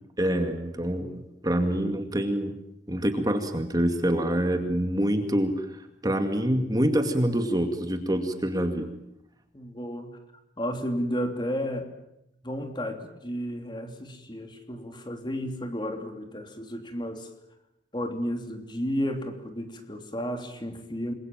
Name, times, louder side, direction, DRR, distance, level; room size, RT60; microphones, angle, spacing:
voice 1, 0.2-2.5 2.9-5.7 6.0-8.9, right 1 dB, 20° right, 6 dB, 2.2 m, -26 dB
voice 2, 9.5-10.2 10.6-11.9 12.4-17.3 17.9-21.1, equal, 25° left, 6 dB, 3.1 m, -32 dB
28.0 x 22.0 x 9.2 m, 0.84 s
head